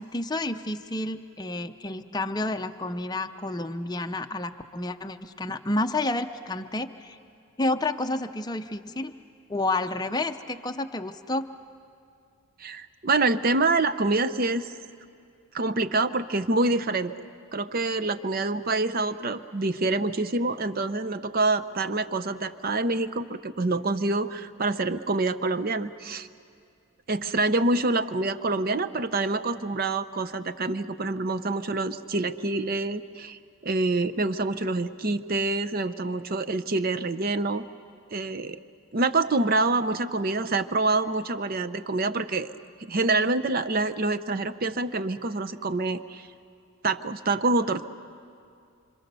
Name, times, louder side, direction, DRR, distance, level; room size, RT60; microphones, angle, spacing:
voice 1, 0.0-7.2 7.6-9.1 9.5-11.5, left 2 dB, 20° left, 7 dB, 0.6 m, -30 dB
voice 2, 12.6-14.7 15.5-17.1 17.5-26.3 27.1-37.7 38.1-38.6 38.9-42.5 42.8-46.3 46.8-47.9, right 2 dB, 40° right, 12 dB, 0.6 m, -26 dB
27.0 x 26.0 x 6.8 m, 2.4 s
head